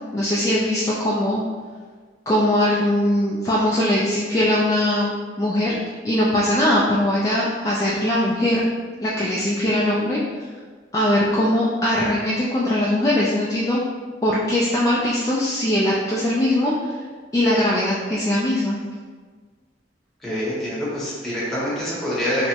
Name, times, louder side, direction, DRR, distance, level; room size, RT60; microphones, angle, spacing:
voice 1, 0.1-1.4 2.3-5.7 6.0-8.6 9.0-10.2 10.9-13.8 14.2-17.0 17.3-18.8, left 1 dB, 20° left, -7 dB, 0.3 m, -21 dB
voice 2, 20.2-22.5, equal, ahead, -9 dB, 0.8 m, -25 dB
3.3 x 2.0 x 2.8 m, 1.5 s
head